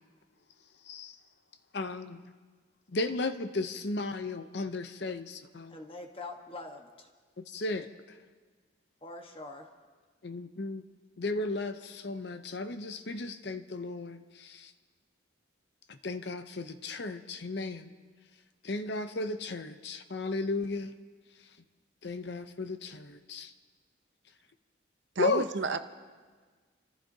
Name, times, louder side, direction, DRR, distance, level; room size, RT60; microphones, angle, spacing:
voice 1, 1.7-2.2 2.9-5.8 7.5-7.9 10.2-10.8 11.2-14.7 15.9-17.9 18.6-20.9 22.0-23.5 25.2-25.5, left 3 dB, 60° left, 9 dB, 0.7 m, -35 dB
voice 2, 5.7-7.1 9.0-9.7, left 2 dB, 30° left, 3 dB, 1.2 m, -44 dB
voice 3, 25.2-25.8, right 4 dB, 70° right, 9 dB, 0.7 m, -31 dB
28.5 x 15.0 x 2.8 m, 1.5 s
head